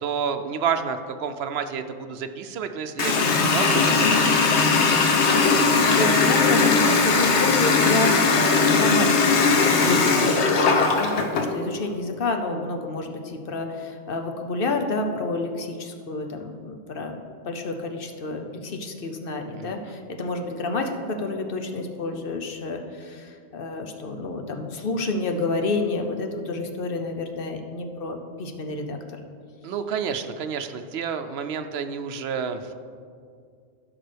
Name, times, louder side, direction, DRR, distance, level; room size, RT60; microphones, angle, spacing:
voice 1, 0.0-4.6 19.6-19.9 29.6-32.7, right 6 dB, 70° right, 8 dB, 0.8 m, -30 dB
Water tap faucet, 3.0-11.5, left 4 dB, 90° left, 1.1 m, -19 dB
voice 2, 5.3-17.2 17.4-29.2, left 2 dB, 60° left, 5 dB, 0.9 m, -29 dB
14.5 x 6.0 x 3.4 m, 2.2 s
omnidirectional pair, 1.1 m